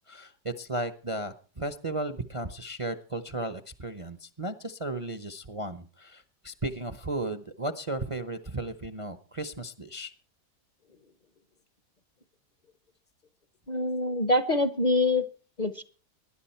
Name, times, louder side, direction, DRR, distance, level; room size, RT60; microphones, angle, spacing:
voice 1, 0.1-10.1, right 2 dB, 25° right, 10 dB, 0.7 m, -35 dB
voice 2, 13.7-15.2 15.6-15.8, left 2 dB, 35° left, 10 dB, 0.8 m, -25 dB
20.0 x 11.0 x 4.4 m, 0.39 s
omnidirectional pair, 1.7 m